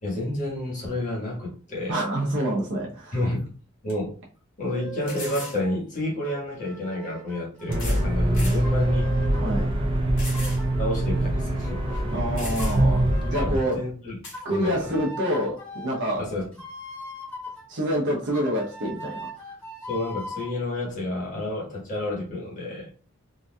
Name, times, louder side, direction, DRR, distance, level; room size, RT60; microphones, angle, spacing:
voice 1, 0.0-2.0 3.1-3.4 3.8-4.1 4.6-9.1 10.8-12.0 13.3-14.1 14.5-15.0 16.2-16.4 19.9-22.9, left 1 dB, 40° left, -3 dB, 1.4 m, -30 dB
voice 2, 1.9-3.2 9.3-9.7 12.1-13.8 14.4-16.3 17.7-19.3, equal, 60° right, -3 dB, 0.8 m, -27 dB
sound 1, 3.3-3.4 3.9-4.0 5.1-5.6 6.7-6.8 7.7-8.1 8.3-8.6 9.1-9.2 10.2-10.6 11.0-11.1 11.9-12.0 12.4-13.0 14.2-14.4, left 2 dB, 65° left, 1.7 m, -38 dB
sound 2, 4.7-5.7 6.2-9.7 10.3-12.2 12.6-13.7 14.3-17.6 18.3-20.5, right 1 dB, 5° left, 1.4 m, -40 dB
sound 3, 7.7-13.6, right 1 dB, 25° right, 0.5 m, -24 dB
3.8 x 2.6 x 2.2 m, 0.38 s
head